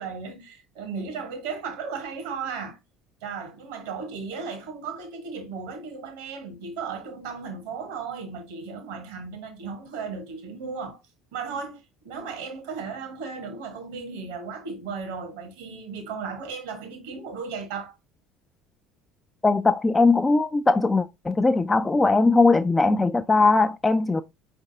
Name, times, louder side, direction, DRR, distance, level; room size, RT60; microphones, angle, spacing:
voice 1, 0.0-2.8 3.2-11.0 11.3-17.9, right 5 dB, 65° right, 1.2 m, -35 dB
voice 2, 19.4-24.2, left 3 dB, 15° left, 0.3 m, -20 dB
5.2 x 3.3 x 2.6 m
figure-of-eight pair, 60°, 0 cm